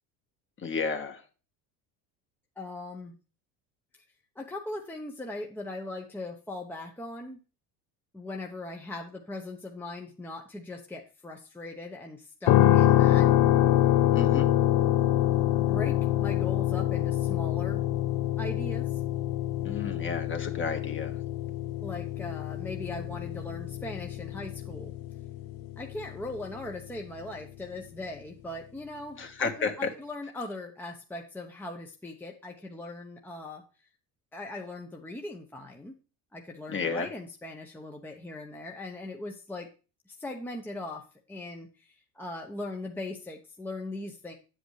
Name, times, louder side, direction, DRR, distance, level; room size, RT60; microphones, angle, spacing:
voice 1, 0.6-1.2 14.1-14.5 19.6-21.2 29.2-29.7 36.7-37.1, left 5 dB, 30° left, 5 dB, 1.6 m, -32 dB
voice 2, 2.6-3.1 4.4-7.4 8.1-13.3 15.6-17.8 18.4-19.0 21.8-24.9 25.8-33.6 34.3-35.9 36.3-39.7 40.1-44.4, left 2 dB, 5° left, 2 dB, 0.8 m, -39 dB
sound 1, 12.5-26.5, left 13 dB, 65° left, 0.7 m, -25 dB
9.0 x 7.9 x 3.2 m, 0.34 s
cardioid pair, 120°, 37 cm